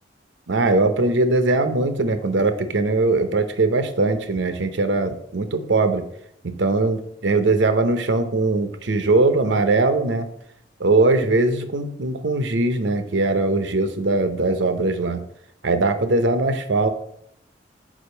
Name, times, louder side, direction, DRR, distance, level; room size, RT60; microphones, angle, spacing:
voice 1, 0.5-6.0 6.4-10.3 10.8-15.2 15.6-16.9, right 2 dB, 80° right, 9 dB, 0.8 m, -20 dB
5.0 x 4.7 x 5.6 m, 0.71 s
head